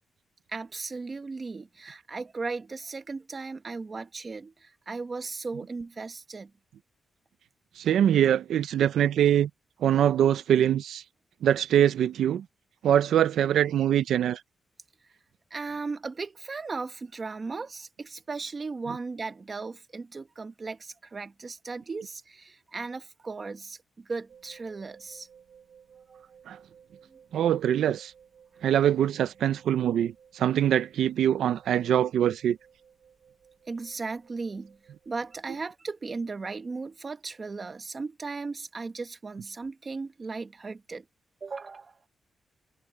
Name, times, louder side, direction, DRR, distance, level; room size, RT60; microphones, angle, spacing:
voice 1, 0.5-6.5 15.5-25.3 26.1-26.2 27.1-27.2 28.7-28.9 33.7-34.8 35.0-41.1 41.4-42.0, right 4 dB, 25° right, 1.3 m, -36 dB
voice 2, 7.8-9.5 9.8-11.0 11.4-12.4 12.8-14.4 26.5-26.6 27.3-28.1 28.6-32.6, right 10 dB, 90° right, 0.5 m, -23 dB
sound 1, 24.3-35.6, right 7 dB, 55° right, 2.9 m, -58 dB
wide cardioid pair, 165°, 0 cm